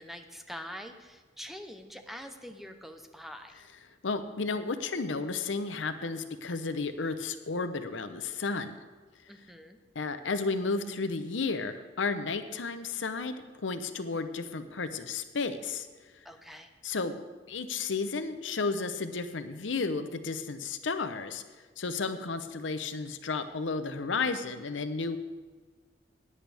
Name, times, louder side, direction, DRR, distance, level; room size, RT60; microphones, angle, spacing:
voice 1, 0.0-3.6 9.3-9.8 16.2-16.7, equal, ahead, 6 dB, 0.8 m, -45 dB
voice 2, 4.0-8.7 9.9-13.3 13.6-15.9 16.8-17.1 17.5-21.4 21.8-25.2, left 4 dB, 85° left, 10 dB, 0.8 m, -32 dB
16.5 x 10.0 x 3.4 m, 1.3 s
head